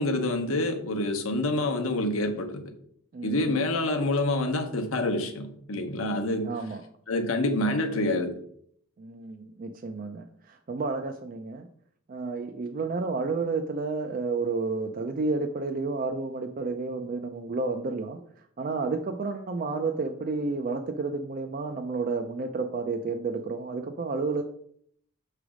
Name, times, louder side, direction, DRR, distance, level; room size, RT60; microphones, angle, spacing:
voice 1, 0.0-2.6 3.2-6.5 7.1-8.3, left 2 dB, 80° left, 6 dB, 0.8 m, -27 dB
voice 2, 3.1-3.6 6.0-6.8 9.0-11.7 12.1-18.2 18.6-24.4, right 3 dB, 40° right, 5 dB, 0.4 m, -31 dB
6.1 x 3.3 x 4.8 m, 0.65 s
head